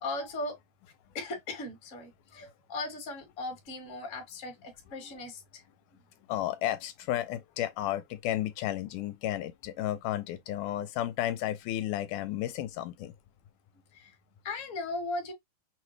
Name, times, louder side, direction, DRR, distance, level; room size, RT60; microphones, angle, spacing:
voice 1, 0.0-0.6 1.1-5.6 13.9-14.1 14.4-15.3, left 2 dB, 35° left, 1.3 m, -37 dB
voice 2, 6.3-13.1, left 13 dB, 80° left, 2.0 m, -33 dB
6.0 x 2.2 x 3.1 m
omnidirectional pair, 3.7 m